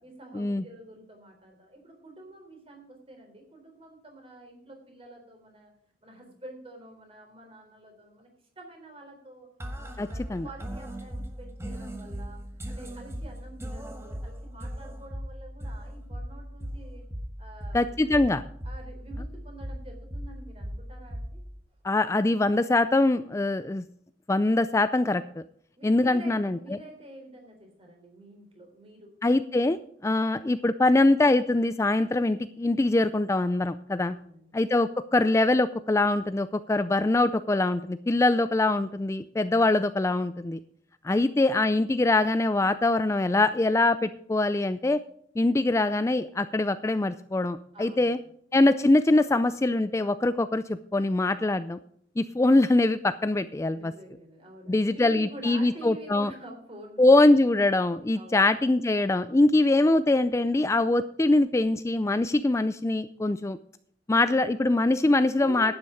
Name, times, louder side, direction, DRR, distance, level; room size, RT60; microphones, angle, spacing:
voice 1, 0.0-5.7 6.0-8.3 8.6-9.5 9.8-12.4 12.7-17.1 17.4-18.4 18.6-21.4 25.8-29.2 29.5-29.7 34.0-34.6 47.7-48.3 53.7-57.3 58.1-58.6 65.3-65.7, right 2 dB, 30° right, 3 dB, 3.7 m, -47 dB
sound 1, 9.6-21.6, equal, 15° right, 1.6 m, -38 dB
voice 2, 10.0-10.5 17.7-18.4 21.8-23.8 24.3-25.4 25.8-26.6 29.2-29.8 30.0-34.2 34.5-40.6 41.0-45.0 45.4-48.2 48.5-51.8 52.2-53.9 54.7-56.3 57.0-63.6 64.1-65.7, left 2 dB, 15° left, 12 dB, 0.3 m, -23 dB
11.5 x 9.6 x 4.9 m, 0.65 s
head